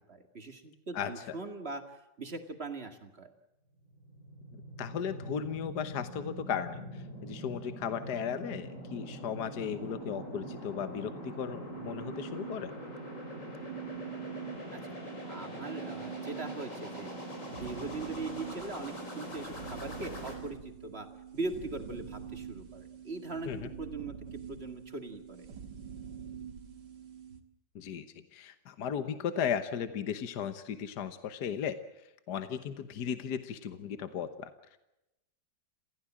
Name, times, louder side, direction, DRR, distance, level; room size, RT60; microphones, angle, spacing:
voice 1, 0.1-3.3 14.7-14.8 15.2-17.1 17.5-21.1 21.3-25.5, right 3 dB, 35° right, 6 dB, 2.3 m, -41 dB
voice 2, 0.9-1.4 4.8-12.7 23.4-23.7 27.7-28.1 28.3-34.8, left 8 dB, 65° left, 10 dB, 1.7 m, -36 dB
sound 1, 3.8-20.3, equal, 45° left, 5.2 m, -43 dB
sound 2, 9.6-27.4, right 8 dB, 70° right, 2.2 m, -46 dB
27.0 x 16.0 x 7.5 m, 0.91 s
omnidirectional pair, 1.9 m